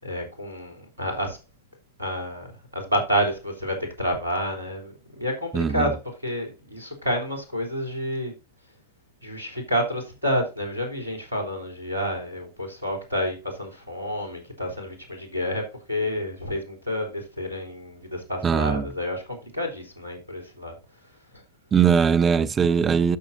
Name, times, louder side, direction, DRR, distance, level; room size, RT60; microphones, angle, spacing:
voice 1, 0.0-1.4 2.0-8.3 9.2-20.7, equal, 80° right, 3.4 m, -29 dB
voice 2, 5.5-5.9 18.4-18.8 21.7-23.2, right 6 dB, 20° right, 0.6 m, -20 dB
12.5 x 6.4 x 2.7 m
figure-of-eight pair, 90°, 0 cm